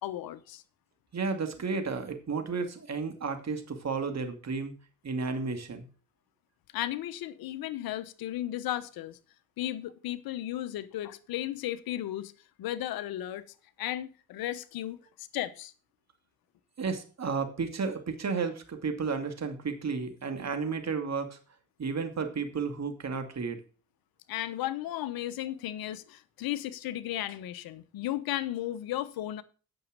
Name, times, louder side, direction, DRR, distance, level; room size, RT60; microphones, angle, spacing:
voice 1, 0.0-0.6 6.7-9.2 9.6-12.3 12.6-13.4 13.8-15.7 24.3-29.4, left 13 dB, 70° left, 1.0 m, -35 dB
voice 2, 1.1-4.7 5.0-5.9 16.8-21.4 21.8-23.6, right 5 dB, 45° right, 2.4 m, -32 dB
8.9 x 6.4 x 6.5 m
hypercardioid pair, 50°, 37 cm